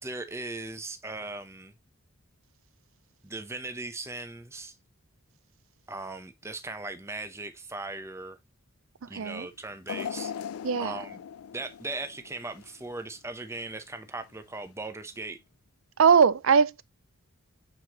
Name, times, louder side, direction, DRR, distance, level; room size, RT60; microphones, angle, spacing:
voice 1, 0.0-1.7 3.2-4.8 5.9-8.4 9.1-10.3 10.8-11.2 11.5-15.4, right 2 dB, 10° right, 0.7 m, -38 dB
voice 2, 9.0-9.5 10.6-11.0 16.0-16.8, right 6 dB, 65° right, 0.5 m, -21 dB
sound 1, 9.9-13.0 13.5-13.6 14.6-14.7, left 8 dB, 75° left, 0.3 m, -39 dB
7.5 x 4.7 x 2.9 m
head